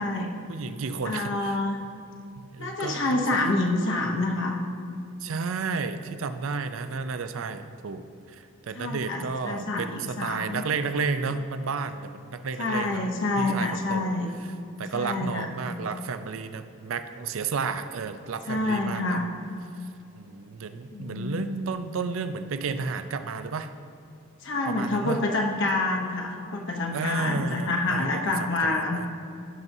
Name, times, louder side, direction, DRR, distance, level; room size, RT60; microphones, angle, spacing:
voice 1, 0.5-1.6 2.5-3.4 5.2-13.1 13.4-14.2 14.8-19.2 20.2-23.7 24.7-25.2 26.9-29.1, right 4 dB, 65° right, 10 dB, 0.5 m, -32 dB
voice 2, 1.0-1.9 2.6-4.6 8.7-10.6 12.6-14.3 14.9-15.5 18.5-19.3 20.9-21.6 24.4-29.0, left 2 dB, 60° left, 0 dB, 0.9 m, -27 dB
16.0 x 6.0 x 2.7 m, 2.6 s
head